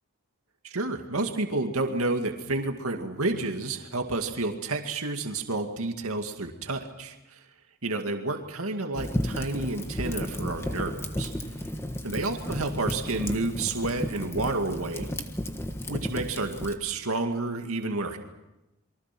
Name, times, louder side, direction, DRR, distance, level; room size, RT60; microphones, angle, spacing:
voice 1, 0.6-7.4 7.8-11.3 12.0-15.1 15.9-18.2, right 2 dB, 75° right, 4 dB, 2.2 m, -30 dB
Fire, 8.9-16.7, equal, 10° left, 1.5 m, -33 dB
29.0 x 23.5 x 6.1 m, 0.96 s
head